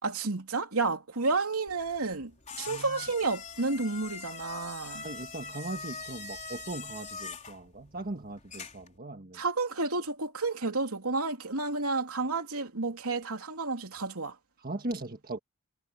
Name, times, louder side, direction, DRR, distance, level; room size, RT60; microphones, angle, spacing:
voice 1, 0.0-2.3 2.6-5.1 9.3-14.3, right 3 dB, 75° right, 3.2 m, -31 dB
sound 1, 1.7-9.0, left 4 dB, 35° left, 3.9 m, -43 dB
voice 2, 2.7-3.1 5.0-9.4 14.6-15.4, right 2 dB, 40° right, 1.6 m, -39 dB
head